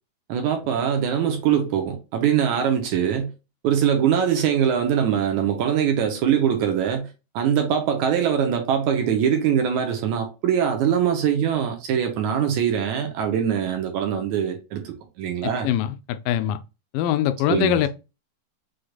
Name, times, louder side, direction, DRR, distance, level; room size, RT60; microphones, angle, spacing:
voice 1, 0.3-3.3 3.6-7.1 7.3-15.7 17.5-17.9, right 8 dB, 75° right, 1.9 m, -22 dB
voice 2, 15.4-16.6 16.9-17.9, left 12 dB, 80° left, 2.1 m, -23 dB
6.4 x 3.1 x 2.3 m
omnidirectional pair, 3.9 m